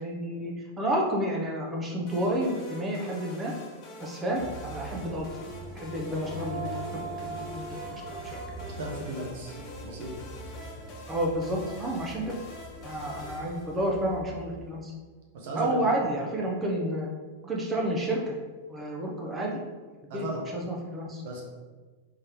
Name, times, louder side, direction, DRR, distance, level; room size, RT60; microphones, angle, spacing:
voice 1, 0.0-3.5 4.0-5.3 5.8-8.4 11.1-12.4 12.8-14.9 15.5-17.1 17.4-18.4 18.7-19.6 20.1-20.3 20.5-21.2, right 1 dB, 15° right, -2 dB, 0.5 m, -30 dB
sound 1, 2.1-14.3, equal, 30° left, 0.6 m, -46 dB
sound 2, 4.4-14.7, left 1 dB, 70° left, 1.0 m, -44 dB
Female singing, 6.0-11.2, right 4 dB, 50° left, 1.3 m, -42 dB
voice 2, 8.8-9.5 9.8-10.1 15.3-16.0 20.1-20.4 21.2-21.4, right 2 dB, 55° right, -1 dB, 0.9 m, -36 dB
3.6 x 2.8 x 3.3 m, 1.4 s
supercardioid pair, 170°, 0 cm